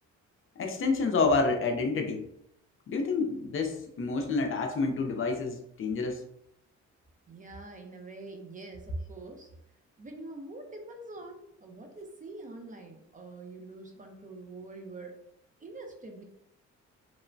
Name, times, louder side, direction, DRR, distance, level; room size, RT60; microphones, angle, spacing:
voice 1, 0.6-2.3 2.9-6.2, left 4 dB, 45° left, 3 dB, 0.5 m, -28 dB
voice 2, 7.3-9.5 10.0-15.2 15.6-16.2, right 2 dB, 25° right, 3 dB, 0.5 m, -45 dB
2.9 x 2.0 x 2.5 m, 0.76 s
cardioid pair, 90°, 30 cm